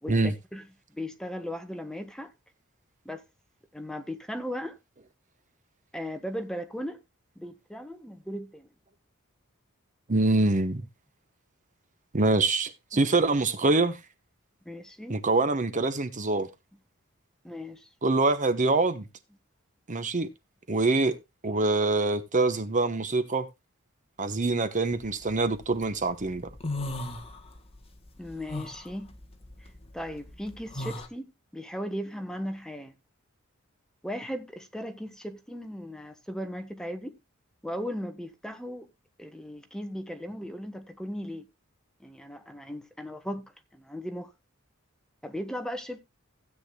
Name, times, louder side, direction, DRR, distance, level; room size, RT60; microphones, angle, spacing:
voice 1, 0.0-0.7 0.9-2.3 3.0-3.2 3.7-4.8 5.9-7.0 7.3-8.7 12.9-13.0 14.6-15.2 17.4-17.9 28.2-29.2 29.9-32.9 34.0-37.2 37.6-38.9 39.2-41.5 42.0-44.3 45.2-46.0, equal, 5° left, 1.2 m, -37 dB
voice 2, 10.1-10.8 12.1-14.0 15.1-16.5 18.0-19.0 19.9-20.3 20.7-21.2 21.4-23.5 24.2-26.5, right 3 dB, 40° right, 1.0 m, -25 dB
sound 1, 25.0-25.8 26.2-27.8 28.1-31.1, left 2 dB, 30° left, 1.5 m, -36 dB
16.0 x 8.6 x 2.3 m
head